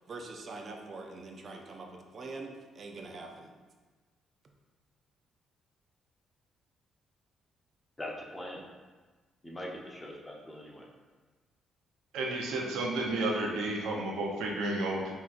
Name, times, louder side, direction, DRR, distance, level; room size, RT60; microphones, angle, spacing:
voice 1, 0.1-3.5, right 3 dB, 50° right, 2 dB, 0.6 m, -44 dB
voice 2, 8.0-8.6 9.4-10.9, left 1 dB, 15° left, -2 dB, 0.8 m, -42 dB
voice 3, 12.1-15.1, right 2 dB, 90° right, 0 dB, 0.6 m, -32 dB
6.0 x 3.0 x 2.5 m, 1.3 s
cardioid pair, 90°, 0 cm